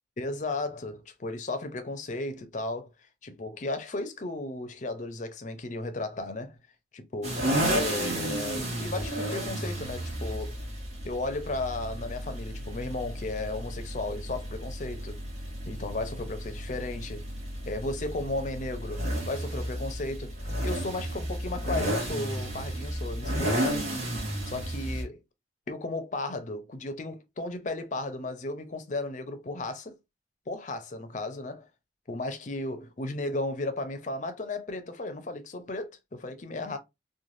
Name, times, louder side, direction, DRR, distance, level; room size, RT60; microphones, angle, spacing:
voice 1, 0.2-2.9 3.2-6.6 6.9-7.4 7.7-10.6 11.0-15.2 15.6-17.2 17.6-20.3 20.6-23.9 24.4-25.2 25.7-29.9 30.5-31.7 32.1-36.8, left 2 dB, 40° left, 0.5 m, -35 dB
sound 1, 7.2-25.0, right 1 dB, 40° right, 1.2 m, -32 dB
3.2 x 2.2 x 2.5 m
head